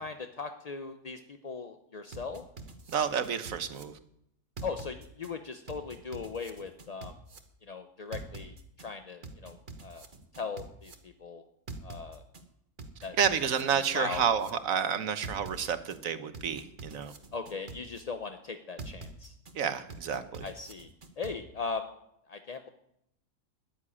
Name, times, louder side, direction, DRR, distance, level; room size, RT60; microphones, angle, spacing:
voice 1, 0.0-2.4 4.6-7.1 7.7-9.6 9.8-10.0 10.4-11.4 11.8-12.2 13.0-13.2 13.7-14.2 17.3-19.3 20.4-20.9 21.2-21.9 22.3-22.7, left 4 dB, 45° left, 7 dB, 0.5 m, -39 dB
sound 1, 2.1-3.8 4.6-5.3 5.7-7.4 8.1-8.9 9.2-10.9 11.7-12.4 12.8-14.5 15.2-16.0 16.3-18.0 18.8-19.5 19.9-21.3, right 3 dB, 35° right, 1.3 m, -44 dB
voice 2, 2.9-4.0 13.2-17.1 19.5-20.5, right 7 dB, 60° right, 11 dB, 1.4 m, -30 dB
13.5 x 7.4 x 9.9 m, 0.78 s
omnidirectional pair, 1.6 m